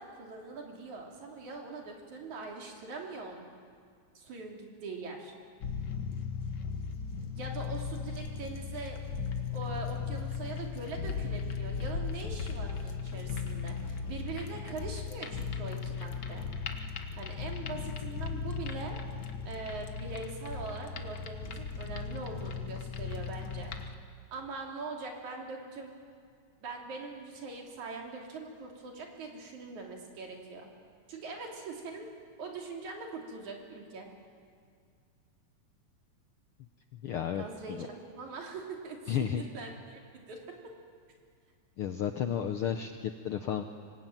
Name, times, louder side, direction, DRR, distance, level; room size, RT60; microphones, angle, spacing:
voice 1, 0.0-3.5 4.1-5.4 7.4-9.0 9.5-16.5 17.2-19.0 19.4-23.8 24.3-25.9 26.6-30.7 31.1-32.1 32.4-34.1 37.3-40.7, right 3 dB, 70° right, 1 dB, 4.4 m, -42 dB
sound 1, 5.6-23.9, left 6 dB, 50° left, 1.3 m, -37 dB
voice 2, 37.0-37.9 39.1-39.4 41.8-43.6, left 9 dB, 70° left, 7 dB, 1.3 m, -33 dB
25.0 x 19.5 x 9.2 m, 2.1 s
omnidirectional pair, 3.5 m